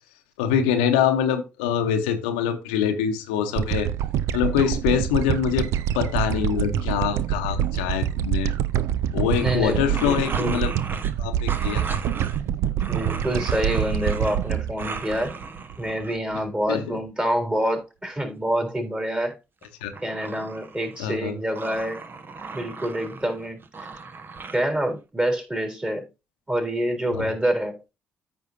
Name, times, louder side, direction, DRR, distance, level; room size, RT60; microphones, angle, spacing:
voice 1, 0.4-3.9 4.3-5.7 5.9-8.5 9.1-10.7 11.2-12.0 16.7-17.0 19.8-19.9 21.0-21.3 27.1-27.3, left 8 dB, 80° left, 0.8 m, -24 dB
sound 1, 3.6-16.0, right 10 dB, 65° right, 0.5 m, -26 dB
sound 2, 9.3-11.1 11.5-12.4 12.8-14.5 14.8-16.2 19.6-21.2 21.5-24.6, right 4 dB, 40° right, 1.1 m, -37 dB
voice 2, 9.4-10.6 12.9-15.3 15.8-19.4 20.0-22.0 22.5-23.9 24.5-26.1 26.5-27.8, equal, 20° right, 3.6 m, -27 dB
14.0 x 5.5 x 2.6 m
hypercardioid pair, 45°, 5 cm